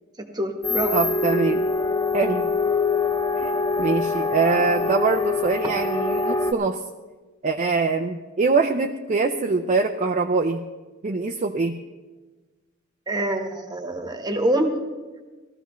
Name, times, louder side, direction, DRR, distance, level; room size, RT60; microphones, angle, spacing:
voice 1, 0.2-0.9 13.1-14.8, right 1 dB, 20° right, 5 dB, 1.3 m, -25 dB
sound 1, 0.6-6.5, left 3 dB, 15° left, 0.6 m, -24 dB
voice 2, 0.9-1.7 2.1-2.5 3.4-3.5 3.8-6.8 7.4-10.6 11.0-11.8, right 4 dB, 35° right, 4 dB, 0.5 m, -23 dB
18.5 x 14.0 x 3.1 m, 1.3 s
head